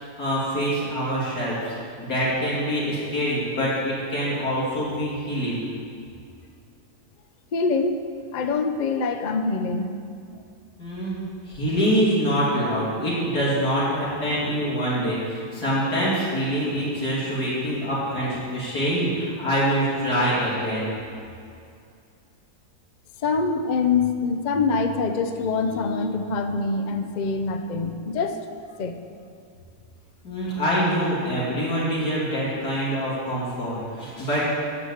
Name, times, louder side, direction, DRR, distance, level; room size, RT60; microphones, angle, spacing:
voice 1, 0.2-1.7 2.0-5.6 10.8-11.2 11.5-20.9 30.2-34.4, equal, 85° left, -8 dB, 3.3 m, -25 dB
voice 2, 7.5-8.0 8.3-9.9 23.2-28.4 28.8-29.0, left 4 dB, 55° left, 7 dB, 0.5 m, -24 dB
12.0 x 4.9 x 8.0 m, 2.4 s
omnidirectional pair, 1.6 m